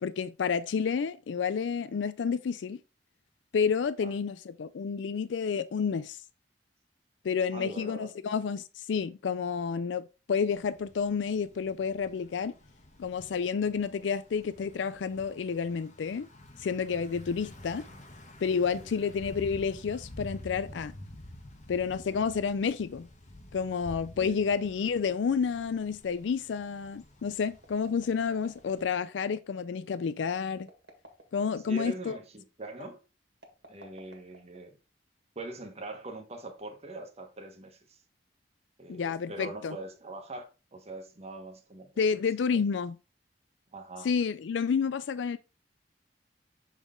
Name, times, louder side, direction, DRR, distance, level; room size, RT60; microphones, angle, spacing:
voice 1, 0.0-2.8 3.5-6.2 7.2-12.5 13.0-16.3 16.6-17.8 18.4-20.9 21.7-23.1 23.5-30.7 31.3-32.2 38.9-39.8 42.0-43.0 44.0-45.4, left 6 dB, 80° left, 0.4 m, -30 dB
voice 2, 7.5-8.1 17.9-18.0 18.8-18.9 24.2-24.4 31.7-33.0 33.7-34.7 35.3-38.0 38.8-42.0 42.5-42.6 43.7-44.1, right 2 dB, 35° right, 1.2 m, -42 dB
Thunder / Bicycle, 10.5-28.9, left 1 dB, 40° left, 1.2 m, -50 dB
sound 1, 27.6-29.0 30.6-31.7 33.3-34.9, right 1 dB, 70° right, 1.8 m, -53 dB
7.0 x 4.1 x 3.7 m
head